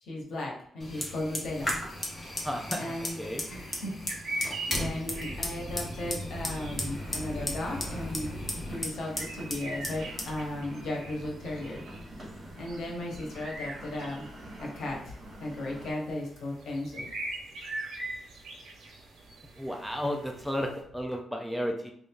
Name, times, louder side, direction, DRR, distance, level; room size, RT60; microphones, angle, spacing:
voice 1, 0.0-1.7 2.8-3.9 4.3-11.8 12.6-14.3 14.6-17.1, left 1 dB, 75° left, -1 dB, 1.2 m, -36 dB
Fire, 0.8-12.6, left 1 dB, 15° left, 0.8 m, -37 dB
sound 1, 1.5-20.8, right 2 dB, 85° right, 1.0 m, -43 dB
voice 2, 2.4-3.4 19.6-21.9, equal, ahead, 2 dB, 0.4 m, -33 dB
sound 2, 6.4-15.9, equal, 25° right, 1.5 m, -47 dB
3.4 x 2.6 x 3.5 m, 0.67 s
wide cardioid pair, 165°, 0 cm